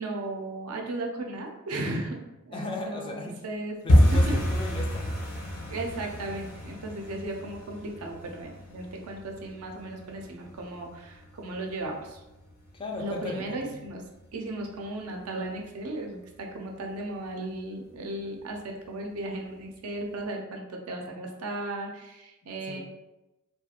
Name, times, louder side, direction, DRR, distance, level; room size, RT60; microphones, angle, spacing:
voice 1, 0.0-2.2 2.5-3.8 4.3-4.4 5.7-12.2 13.0-14.0 14.3-22.8, right 2 dB, 85° right, 1 dB, 0.5 m, -36 dB
voice 2, 2.5-3.4 3.8-5.1 12.7-13.8 22.7-22.8, left 2 dB, 25° left, 1 dB, 0.3 m, -36 dB
sound 1, 3.9-14.6 14.9-15.6 15.8-16.1 16.4-16.8 17.1-17.2 17.7-18.2 18.5-18.6 19.1-19.2, equal, 65° left, 0.6 m, -29 dB
2.4 x 2.3 x 2.8 m, 1.0 s
head